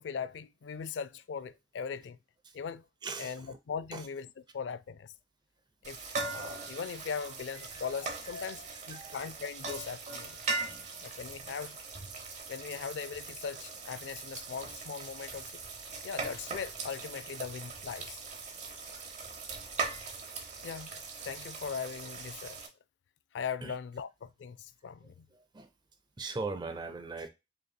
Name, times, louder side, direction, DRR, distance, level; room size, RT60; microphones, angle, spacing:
voice 1, 0.0-2.2 2.5-2.8 3.2-4.3 4.5-5.1 5.8-6.0 6.3-10.4 11.0-11.8 12.5-15.6 16.0-18.1 20.6-22.6 23.3-25.3, left 6 dB, 90° left, 0.3 m, -39 dB
voice 2, 3.0-3.6 3.9-4.1 7.6-7.8 8.5-9.3 23.6-23.8 25.0-25.7 26.2-27.3, right 3 dB, 25° right, 0.4 m, -41 dB
sound 1, 5.8-22.7, right 4 dB, 40° right, 0.8 m, -40 dB
5.2 x 2.9 x 2.2 m
head